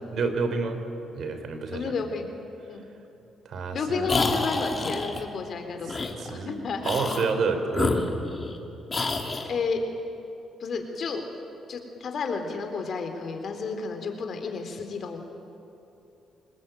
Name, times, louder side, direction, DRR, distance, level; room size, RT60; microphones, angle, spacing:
voice 1, 0.1-0.8 1.2-1.9 3.5-4.2 5.9-8.1, right 4 dB, 65° right, 7 dB, 3.4 m, -29 dB
voice 2, 1.7-2.3 2.7-2.9 3.7-6.9 9.5-9.8 10.6-11.2 11.7-15.2, left 4 dB, 55° left, 5 dB, 3.7 m, -31 dB
sound 1, 4.1-5.2 5.9-6.1 6.8-7.3 7.7-8.6 8.9-9.5, left 3 dB, 30° left, 2.7 m, -28 dB
26.0 x 20.5 x 9.1 m, 2.9 s
cardioid pair, 90°, 0 cm